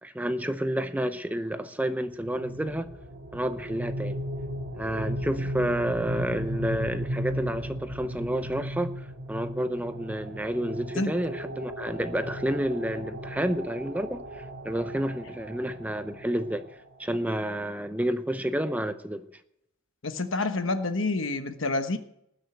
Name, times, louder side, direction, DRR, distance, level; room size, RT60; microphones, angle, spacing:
voice 1, 0.0-3.0 3.3-4.2 4.7-16.7 17.0-19.2, right 1 dB, 5° right, 0.6 m, -30 dB
sound 1, 2.1-16.9, equal, 65° right, 2.1 m, -36 dB
voice 2, 20.0-22.0, left 2 dB, 65° left, 1.1 m, -28 dB
19.0 x 6.6 x 7.9 m
head